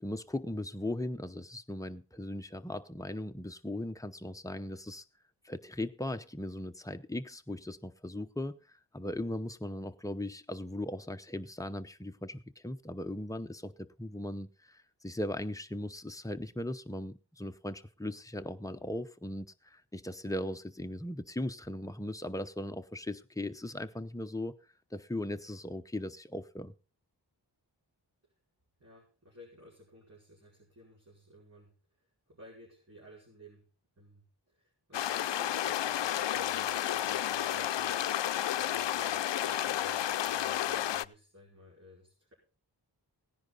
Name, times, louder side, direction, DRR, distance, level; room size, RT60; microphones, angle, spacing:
voice 1, 0.0-5.0 5.4-24.5 24.9-26.7, left 1 dB, 10° left, 0.8 m, -38 dB
voice 2, 28.8-33.7 34.0-42.3, equal, 35° right, 5.0 m, -56 dB
sound 1, 34.9-41.0, left 11 dB, 85° left, 0.5 m, -31 dB
17.0 x 10.5 x 4.0 m
wide cardioid pair, 85°, 42 cm